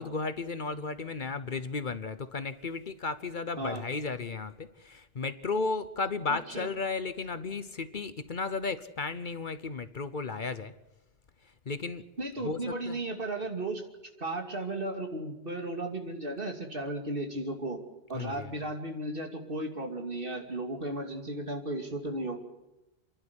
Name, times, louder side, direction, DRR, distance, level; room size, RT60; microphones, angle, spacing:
voice 1, 0.0-10.7 11.7-12.0 12.4-12.6 12.9-13.0 18.1-18.6, left 4 dB, 50° left, 12 dB, 1.0 m, -34 dB
voice 2, 6.3-6.7 12.2-13.8 14.2-17.8 18.1-22.4, right 2 dB, 55° right, 3 dB, 2.9 m, -35 dB
28.5 x 11.5 x 9.7 m, 0.97 s
omnidirectional pair, 1.1 m